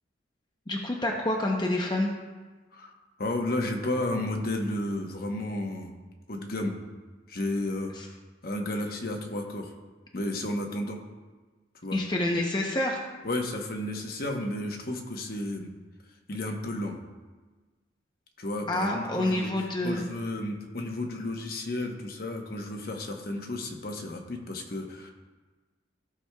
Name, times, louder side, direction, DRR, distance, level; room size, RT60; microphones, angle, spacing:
voice 1, 0.7-2.1 8.0-8.1 11.9-13.0 18.7-20.0, left 1 dB, 25° left, 0 dB, 0.7 m, -28 dB
voice 2, 3.2-5.9 6.3-6.7 7.3-8.2 8.4-9.7 10.1-11.0 11.8-12.0 13.2-15.7 16.3-17.0 18.4-19.5 19.8-25.1, left 1 dB, 50° left, 2 dB, 0.9 m, -32 dB
15.0 x 6.1 x 2.3 m, 1.3 s
head